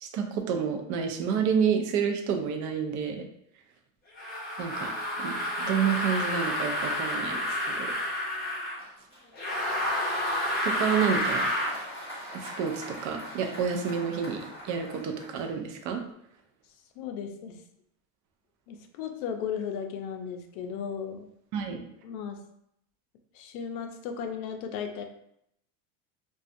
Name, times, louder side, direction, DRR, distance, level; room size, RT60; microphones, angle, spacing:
voice 1, 0.0-3.3 4.6-4.9 5.2-7.9 10.7-11.5 12.3-16.0 21.5-21.8, right 7 dB, 45° right, 4 dB, 0.4 m, -29 dB
sound 1, 4.2-8.8 9.3-11.8, left 1 dB, 20° left, 0.8 m, -30 dB
Applause, 8.8-15.9, equal, 15° right, 1.1 m, -43 dB
voice 2, 17.0-17.6 18.7-21.3 22.0-22.4 23.3-25.0, left 7 dB, 70° left, 5 dB, 0.5 m, -35 dB
2.5 x 2.3 x 2.5 m, 0.75 s
supercardioid pair, 125°, 44 cm